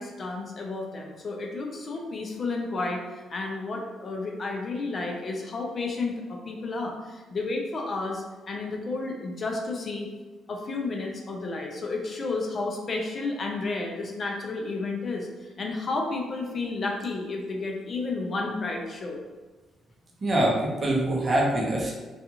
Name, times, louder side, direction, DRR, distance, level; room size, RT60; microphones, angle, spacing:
voice 1, 0.0-10.1 10.5-15.3 15.6-19.2, left 3 dB, 45° left, 1 dB, 0.4 m, -31 dB
voice 2, 20.2-21.9, right 1 dB, 35° right, -3 dB, 0.8 m, -24 dB
2.4 x 2.4 x 2.8 m, 1.3 s
cardioid pair, 90°, 0 cm